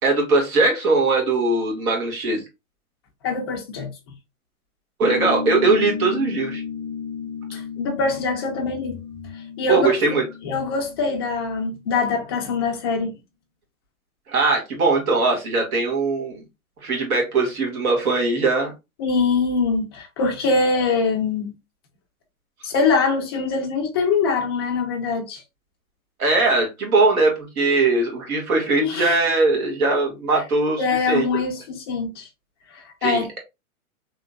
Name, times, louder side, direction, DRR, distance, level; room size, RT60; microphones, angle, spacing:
voice 1, 0.0-2.4 5.0-6.6 9.7-10.2 14.3-16.4 16.8-18.7 26.2-31.3 33.0-33.4, right 3 dB, 75° right, 2.0 m, -20 dB
voice 2, 3.2-3.9 7.5-9.0 9.6-9.9 10.4-13.2 19.0-21.5 22.6-25.4 28.8-29.2 30.8-32.3 32.7-33.4, left 4 dB, 20° left, 0.3 m, -23 dB
sound 1, 5.0-12.0, left 5 dB, 55° right, 1.0 m, -33 dB
3.3 x 2.9 x 2.4 m
hypercardioid pair, 135°, 44 cm